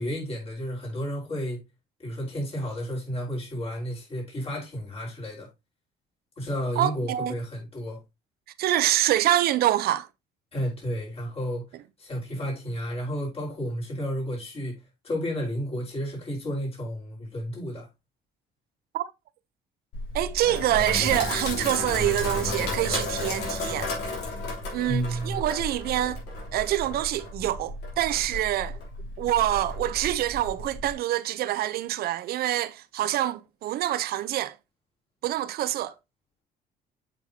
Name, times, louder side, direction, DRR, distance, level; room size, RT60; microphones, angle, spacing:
voice 1, 0.0-1.6 2.0-5.5 6.4-8.0 10.5-11.6 12.0-17.9 24.8-25.4, equal, 35° left, 4.3 m, -32 dB
voice 2, 6.8-7.3 8.6-10.1 18.9-19.0 20.1-23.9 24.7-26.2 26.5-28.8 29.2-34.6 35.2-35.9, right 13 dB, 65° right, 0.6 m, -26 dB
Sink (filling or washing), 19.9-30.9, left 2 dB, 80° left, 3.1 m, -33 dB
7.5 x 5.6 x 2.7 m
cardioid pair, 110°, 17 cm